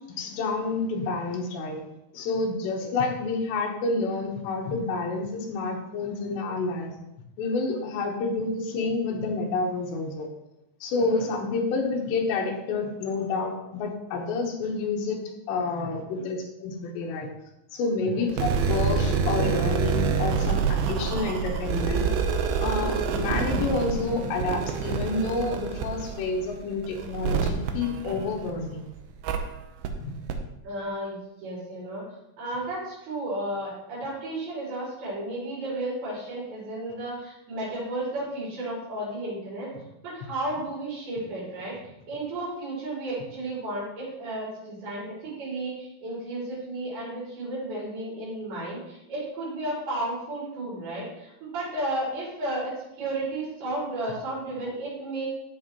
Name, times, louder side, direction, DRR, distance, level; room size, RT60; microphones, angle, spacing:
voice 1, 0.1-1.8 2.1-6.9 7.4-10.3 10.8-15.2 15.5-17.3 17.7-22.0 22.6-28.8 30.0-30.1, left 3 dB, 85° left, 0 dB, 3.4 m, -29 dB
voice 2, 10.9-11.2 16.2-16.3 18.1-18.3 22.6-22.9 30.6-32.0 32.4-39.7 40.0-41.7 42.1-55.3, right 1 dB, 60° right, -9 dB, 5.5 m, -33 dB
sound 1, 18.3-28.7 29.2-29.4 29.8-29.9 30.3-30.4, right 5 dB, 75° right, 2.4 m, -27 dB
13.5 x 6.3 x 3.0 m, 0.87 s
omnidirectional pair, 4.9 m